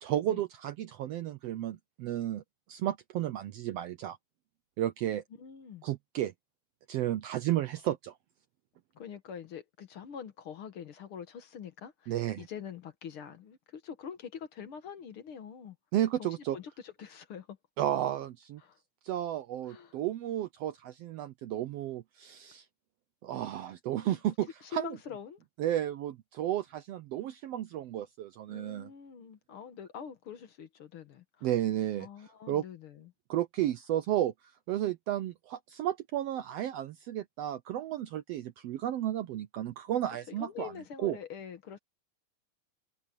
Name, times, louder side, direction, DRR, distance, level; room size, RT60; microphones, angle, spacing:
voice 1, 0.0-2.4 2.7-4.2 4.8-5.2 5.8-6.3 6.9-8.2 12.1-12.5 15.9-16.6 17.8-18.6 19.0-22.6 23.2-25.0 25.6-28.9 31.4-32.1 32.5-32.6 33.3-34.3 34.7-40.7 41.0-41.2, right 12 dB, 70° right, 1.6 m, -33 dB
voice 2, 5.3-5.8 9.0-15.8 16.2-17.6 18.6-18.8 19.7-20.0 24.0-24.2 24.6-25.4 28.5-31.5 32.0-33.1 40.3-41.8, left 8 dB, 55° left, 2.0 m, -45 dB
omnidirectional pair, 3.3 m